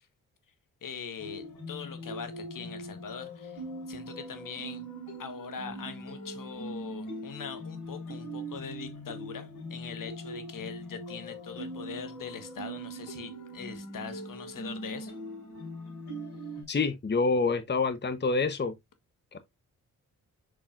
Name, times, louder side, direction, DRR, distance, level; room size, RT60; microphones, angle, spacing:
voice 1, 0.8-3.6 3.9-4.8 5.2-15.2, left 6 dB, 60° left, 1.5 m, -42 dB
sound 1, 1.2-16.6, right 1 dB, 80° left, 4.0 m, -41 dB
voice 2, 16.7-18.7 19.3-19.4, left 4 dB, 30° left, 1.0 m, -27 dB
6.3 x 6.2 x 2.5 m
supercardioid pair, 45°, 37 cm